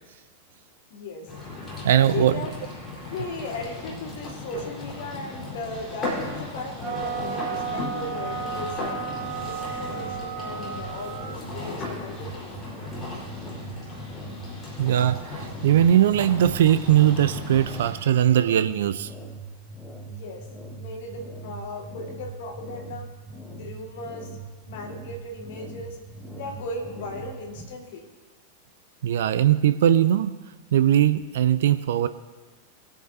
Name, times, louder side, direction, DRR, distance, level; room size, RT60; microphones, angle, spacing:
voice 1, 0.9-1.3 2.1-2.5 3.1-9.0 9.4-12.4 20.1-20.5 20.8-23.1 23.4-24.4 24.7-26.0 26.3-28.1, left 2 dB, 55° left, 2 dB, 1.9 m, -37 dB
sound 1, 1.3-17.9, left 2 dB, 20° left, 4.3 m, -36 dB
voice 2, 1.8-2.4 14.8-19.1 29.0-30.3 30.7-32.1, right 11 dB, 60° right, 12 dB, 0.4 m, -20 dB
sound 2, 6.8-11.4, right 6 dB, 40° right, 1.2 m, -33 dB
sound 3, 8.3-27.6, right 2 dB, ahead, 1.6 m, -41 dB
22.5 x 8.6 x 2.8 m, 1.3 s
figure-of-eight pair, 90°, 0 cm